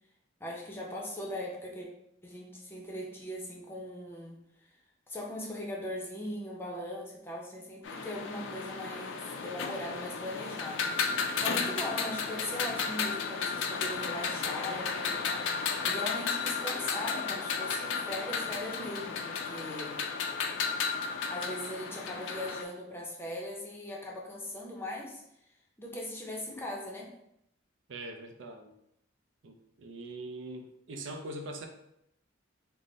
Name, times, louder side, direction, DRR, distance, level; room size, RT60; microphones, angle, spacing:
voice 1, 0.4-1.9 2.2-4.8 5.1-20.0 20.8-25.2 25.8-27.1, left 1 dB, 10° left, -2 dB, 0.6 m, -40 dB
sound 1, 7.8-22.6, left 5 dB, 65° left, 0.4 m, -33 dB
voice 2, 27.9-28.7 29.4-31.7, right 2 dB, 65° right, 4 dB, 0.5 m, -42 dB
3.7 x 2.1 x 3.8 m, 0.78 s
head